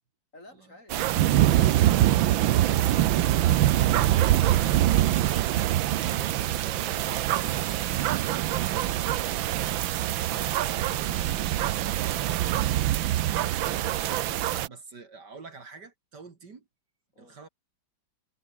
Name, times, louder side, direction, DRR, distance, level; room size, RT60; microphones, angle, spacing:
voice 1, 0.3-2.5 9.0-10.9 11.2-12.8 17.1-17.4, left 2 dB, 35° left, 6.5 m, -54 dB
sound 1, 0.9-14.7, right 13 dB, 75° right, 1.6 m, -24 dB
voice 2, 3.2-7.7 10.3-11.5 14.1-16.6 17.2-17.5, right 4 dB, 55° right, 3.0 m, -46 dB
omnidirectional pair, 2.2 m